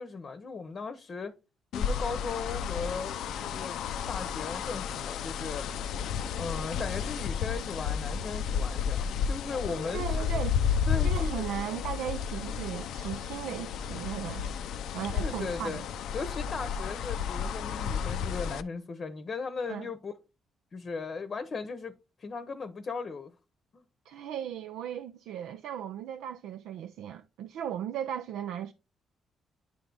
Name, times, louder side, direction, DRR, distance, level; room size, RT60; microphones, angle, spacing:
voice 1, 0.0-1.3 1.7-3.8 4.1-5.7 6.4-10.2 10.9-11.5 15.2-15.8 16.1-20.1 20.7-21.9 22.2-23.3 23.7-23.8, left 4 dB, 45° left, 0.8 m, -37 dB
sound 1, 1.7-18.6, left 7 dB, 80° left, 0.4 m, -32 dB
voice 2, 9.9-10.6 11.0-14.5 14.9-15.8 19.7-19.9 24.1-28.7, right 10 dB, 85° right, 0.4 m, -37 dB
9.9 x 3.4 x 3.9 m
cardioid pair, 90°, 0 cm